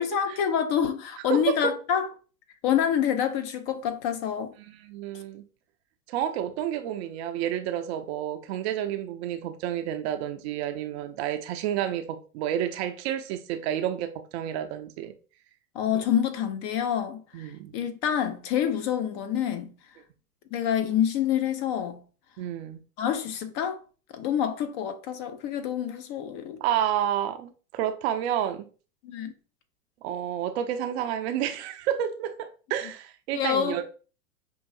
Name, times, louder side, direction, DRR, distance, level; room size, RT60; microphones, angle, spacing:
voice 1, 0.0-2.1 2.6-4.5 15.7-19.7 20.5-22.0 23.0-23.8 24.1-26.6 29.0-29.3 33.3-33.8, left 9 dB, 45° left, 0.7 m, -27 dB
voice 2, 1.3-1.7 4.8-5.4 6.1-15.1 17.3-17.8 22.4-22.8 26.6-28.6 30.0-33.8, right 10 dB, 45° right, 0.5 m, -30 dB
5.4 x 2.5 x 2.5 m
hypercardioid pair, 105°, 48 cm